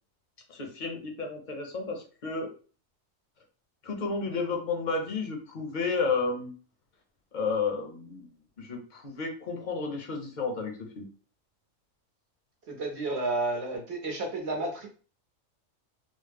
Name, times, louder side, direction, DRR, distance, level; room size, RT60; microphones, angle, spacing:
voice 1, 0.5-2.5 3.8-6.5 7.3-8.3 8.6-11.1, left 4 dB, 45° left, 3 dB, 0.6 m, -32 dB
voice 2, 12.7-14.9, right 2 dB, 60° right, 1 dB, 1.0 m, -31 dB
3.0 x 2.0 x 3.3 m, 0.39 s
omnidirectional pair, 1.4 m